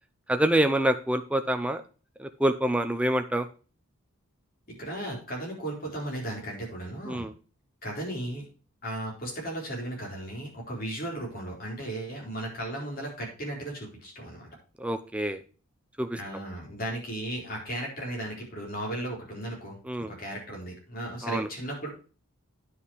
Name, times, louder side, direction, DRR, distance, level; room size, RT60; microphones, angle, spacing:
voice 1, 0.3-1.8 2.2-3.5 7.1-7.3 14.8-15.4 16.0-16.2 19.9-20.1 21.2-21.5, right 1 dB, 5° right, 8 dB, 0.6 m, -26 dB
voice 2, 4.7-7.3 7.8-8.4 8.8-14.5 16.1-21.9, right 1 dB, 40° left, -2 dB, 4.2 m, -36 dB
9.8 x 5.6 x 5.0 m, 0.36 s
head